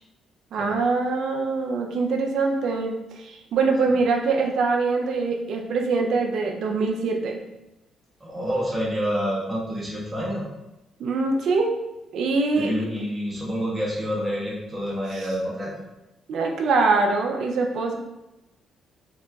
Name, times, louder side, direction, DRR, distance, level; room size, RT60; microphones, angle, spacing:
voice 1, 0.5-7.4 11.0-11.7 12.1-12.7 15.1-15.3 16.3-18.0, right 4 dB, 70° right, 2 dB, 0.5 m, -23 dB
voice 2, 8.2-10.4 12.6-15.7, equal, 20° right, -5 dB, 1.2 m, -28 dB
3.8 x 2.9 x 2.3 m, 0.96 s
cardioid pair, 90°, 0 cm